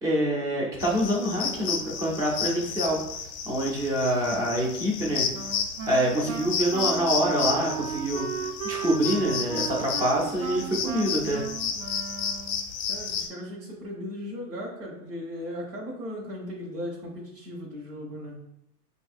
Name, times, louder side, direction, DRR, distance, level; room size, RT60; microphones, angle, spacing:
voice 1, 0.0-3.0 3.5-5.3 5.9-8.3 8.6-11.4, right 1 dB, 10° right, -3 dB, 0.4 m, -26 dB
sound 1, 0.8-13.3, left 6 dB, 35° left, 0.7 m, -32 dB
Wind instrument woodwind instrument, 5.3-12.8, right 7 dB, 60° right, 0.5 m, -35 dB
voice 2, 12.9-18.3, left 1 dB, 80° right, -4 dB, 1.2 m, -37 dB
5.5 x 2.6 x 2.4 m, 0.80 s
hypercardioid pair, 125°, 46 cm